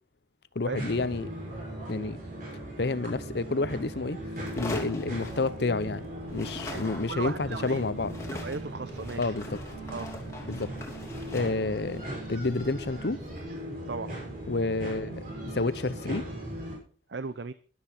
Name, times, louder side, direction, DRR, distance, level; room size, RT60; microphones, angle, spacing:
voice 1, 0.5-1.3 1.9-2.2 2.8-4.2 4.6-6.1 6.3-8.2 9.2-9.5 10.5-10.7 11.3-12.0 12.3-13.2 14.5-16.2, left 3 dB, 60° left, 0.7 m, -29 dB
sound 1, 0.7-16.8, right 1 dB, 45° right, 6.1 m, -38 dB
sound 2, 4.4-6.0 6.3-13.5, left 2 dB, 15° left, 3.0 m, -43 dB
voice 2, 6.7-7.8 8.3-9.4 9.9-10.1 13.9-14.1 17.1-17.5, right 4 dB, 70° right, 0.6 m, -37 dB
13.0 x 12.0 x 4.4 m
head